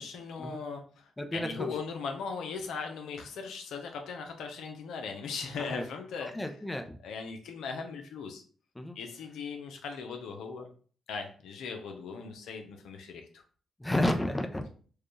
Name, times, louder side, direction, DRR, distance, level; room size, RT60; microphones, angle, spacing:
voice 1, 0.0-6.5 7.0-8.4 8.9-10.7 11.1-13.4, left 5 dB, 80° left, 4 dB, 0.6 m, -39 dB
voice 2, 1.2-1.7 5.7-5.8 6.2-7.0 8.8-9.0 13.8-14.7, left 1 dB, 15° left, 5 dB, 0.6 m, -31 dB
4.6 x 2.3 x 3.2 m, 0.43 s
supercardioid pair, 60°, 0 cm